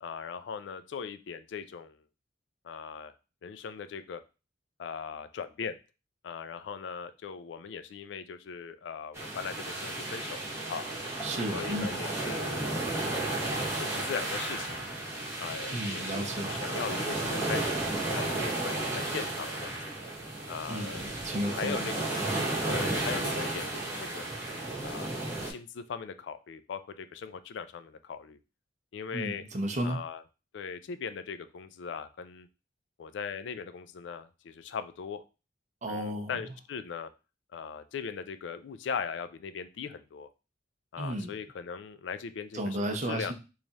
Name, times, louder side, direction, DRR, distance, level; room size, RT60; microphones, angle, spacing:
voice 1, 0.0-2.0 2.6-3.1 3.4-4.2 4.8-5.8 6.2-10.9 11.5-14.9 15.4-19.8 20.5-21.0 21.5-22.0 22.7-24.2 24.8-25.1 25.4-28.4 28.9-29.4 29.8-30.2 30.5-32.5 33.0-35.2 35.9-37.1 37.5-40.3 40.9-43.3, left 6 dB, 70° left, 12 dB, 0.3 m, -39 dB
sound 1, 9.1-25.5, right 2 dB, 15° right, 0.9 m, -33 dB
voice 2, 11.2-12.0 15.7-16.6 20.7-22.0 29.1-30.0 35.8-36.4 41.0-41.3 42.5-43.3, right 1 dB, 40° right, 4 dB, 0.6 m, -33 dB
3.2 x 2.4 x 3.9 m, 0.31 s
head